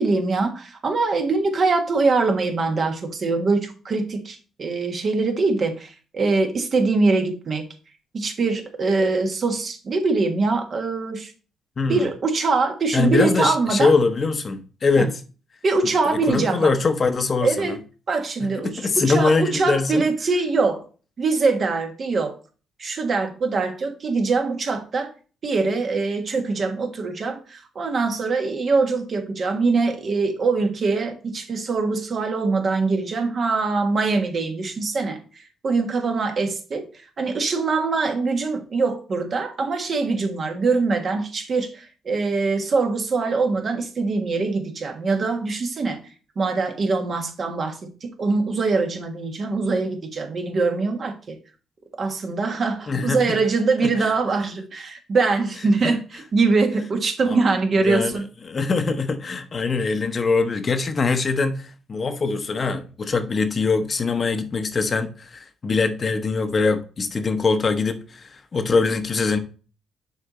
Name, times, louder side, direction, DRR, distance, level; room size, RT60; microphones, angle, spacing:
voice 1, 0.0-7.6 8.1-11.3 11.9-13.9 15.0-15.1 15.6-16.7 17.4-17.7 18.1-20.8 21.2-22.4 22.8-25.1 25.4-36.8 37.2-46.0 46.4-51.4 52.0-58.2, right 3 dB, 50° right, 1.4 m, -23 dB
voice 2, 11.8-12.1 12.9-15.2 16.1-17.8 18.4-20.0 52.9-53.4 53.8-54.1 55.8-56.0 57.3-57.4 57.8-58.1 58.4-69.4, left 4 dB, 40° left, 0.8 m, -23 dB
6.8 x 4.1 x 4.1 m
cardioid pair, 90°, 0 cm